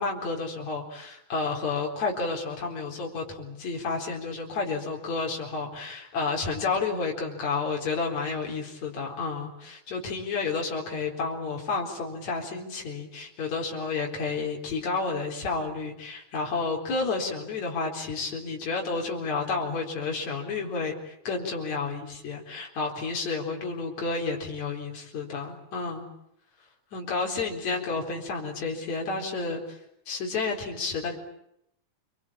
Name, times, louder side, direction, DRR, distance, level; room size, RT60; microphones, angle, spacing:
voice 1, 0.0-26.1 26.9-29.8 30.1-31.2, left 4 dB, 65° left, 0 dB, 5.5 m, -31 dB
28.0 x 23.5 x 8.8 m, 0.78 s
omnidirectional pair, 3.4 m